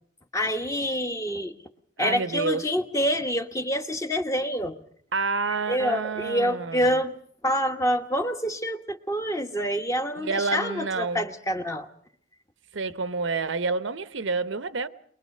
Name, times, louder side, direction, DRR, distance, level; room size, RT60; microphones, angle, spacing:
voice 1, 0.3-1.5 2.0-4.7 5.7-7.1 7.4-11.9, equal, 15° left, 1.2 m, -27 dB
voice 2, 2.0-2.6 5.1-7.0 10.2-11.3 12.7-14.9, right 4 dB, 80° right, 0.8 m, -28 dB
22.5 x 21.5 x 6.6 m
head